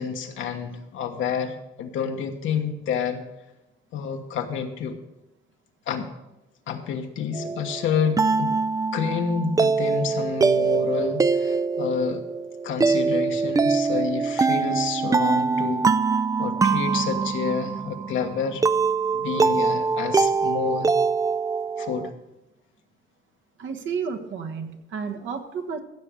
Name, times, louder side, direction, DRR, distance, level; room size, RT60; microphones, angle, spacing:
voice 1, 0.0-3.2 3.9-4.9 5.9-6.1 6.7-8.5 8.9-12.2 12.6-15.8 16.4-18.6 19.1-20.9 21.8-22.1, left 6 dB, 80° left, 4 dB, 1.3 m, -29 dB
sound 1, 7.3-22.1, right 4 dB, 15° right, 0.3 m, -23 dB
voice 2, 23.6-25.8, right 6 dB, 70° right, 6 dB, 1.4 m, -31 dB
15.5 x 6.9 x 5.0 m, 0.95 s
cardioid pair, 90°, 20 cm